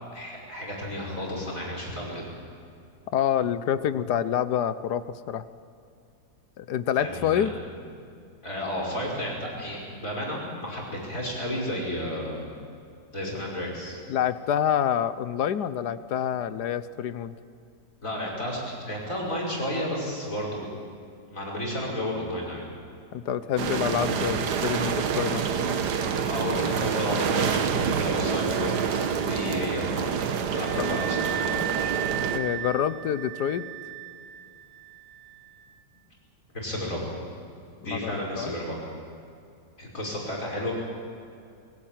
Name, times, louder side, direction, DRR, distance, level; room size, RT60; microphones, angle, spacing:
voice 1, 0.1-2.3 7.0-7.5 8.4-12.5 13.1-14.0 18.0-20.8 21.3-22.6 26.2-30.0 30.5-31.9 36.5-37.1 37.8-38.8 39.8-40.7, left 1 dB, 45° left, -3 dB, 6.0 m, -32 dB
voice 2, 3.1-5.4 6.6-7.5 14.1-17.3 23.1-25.4 30.8-31.0 32.3-33.6 37.9-38.5, left 9 dB, 70° left, 14 dB, 1.4 m, -27 dB
sound 1, 23.6-32.4, right 6 dB, 65° right, 1.7 m, -27 dB
Wind instrument woodwind instrument, 28.3-35.8, right 13 dB, 85° right, 1.7 m, -37 dB
22.5 x 16.5 x 9.1 m, 2.5 s
omnidirectional pair, 1.9 m